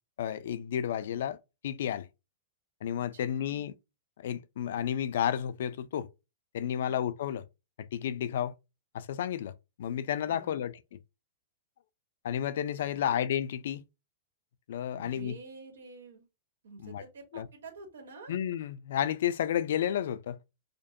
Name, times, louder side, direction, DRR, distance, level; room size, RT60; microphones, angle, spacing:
voice 1, 0.2-1.4 1.6-2.1 2.8-3.7 4.2-6.1 6.5-7.4 7.8-8.5 8.9-9.5 9.8-11.0 12.2-13.8 14.7-15.4 16.8-17.0 17.3-17.5 18.3-20.4, left 10 dB, 70° left, 0.4 m, -31 dB
voice 2, 3.1-3.7 6.7-7.0 10.2-10.7 12.9-13.1 14.9-16.3 16.6-18.3, right 3 dB, 90° right, 1.4 m, -49 dB
5.0 x 2.2 x 2.6 m
hypercardioid pair, 145°, 0 cm